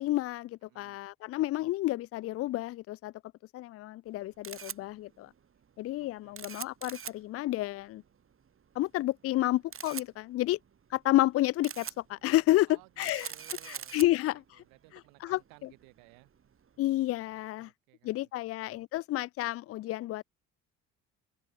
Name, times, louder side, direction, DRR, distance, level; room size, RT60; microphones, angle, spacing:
voice 1, 0.0-3.1 3.5-5.3 5.8-8.0 8.8-10.6 10.9-13.3 13.7-14.4 15.2-15.4 16.8-17.7 18.0-20.2, left 16 dB, 45° left, 0.4 m, -30 dB
voice 2, 0.6-1.0 6.0-6.5 12.7-16.3 17.6-18.5, right 38 dB, 80° right, 7.2 m, -60 dB
Camera, 4.1-17.4, right 7 dB, 40° right, 2.3 m, -46 dB
open air
hypercardioid pair, 60°, 34 cm